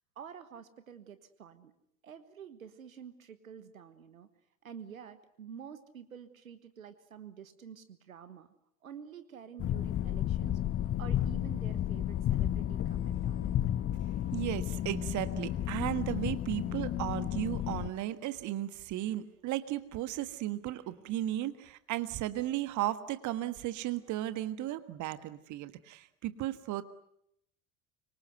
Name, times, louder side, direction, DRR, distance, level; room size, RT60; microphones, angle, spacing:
voice 1, 0.1-1.7 2.0-4.3 4.6-8.5 8.8-10.6 11.0-13.5, right 8 dB, 80° right, 12 dB, 1.5 m, -49 dB
sound 1, 9.6-17.9, left 11 dB, 30° left, 1.1 m, -32 dB
voice 2, 14.3-26.8, right 14 dB, 45° right, 12 dB, 1.6 m, -35 dB
26.0 x 24.0 x 7.9 m, 0.76 s
figure-of-eight pair, 65°, 41 cm